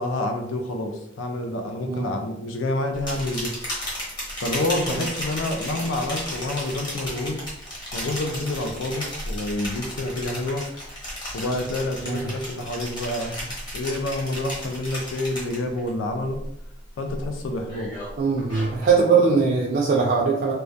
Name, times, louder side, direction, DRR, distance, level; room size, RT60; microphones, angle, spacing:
voice 1, 0.0-3.6 4.4-7.4 7.9-10.7 11.3-16.4 17.0-17.9 19.1-19.3, left 1 dB, 90° left, 4 dB, 0.4 m, -28 dB
sound 1, 2.9-15.9 16.2-16.7 17.1-19.0, equal, 25° left, 0.8 m, -34 dB
voice 2, 18.2-20.5, right 5 dB, 45° right, -3 dB, 0.3 m, -21 dB
2.2 x 2.2 x 2.6 m, 0.77 s
head